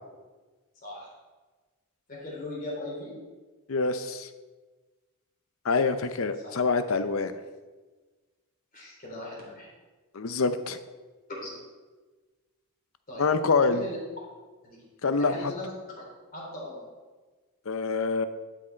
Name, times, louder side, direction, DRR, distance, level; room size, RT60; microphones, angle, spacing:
voice 1, 2.1-3.1 5.7-5.8 6.4-6.5 8.7-9.7 11.4-11.5 13.1-13.3 13.6-14.0 14.6-14.8 15.2-16.0 16.3-16.8, left 1 dB, 40° left, -3 dB, 3.3 m, -39 dB
voice 2, 3.7-4.3 5.6-7.3 10.1-10.8 13.2-13.9 15.0-15.4 17.7-18.3, left 4 dB, 70° left, 11 dB, 0.6 m, -26 dB
11.5 x 6.4 x 4.5 m, 1.3 s
head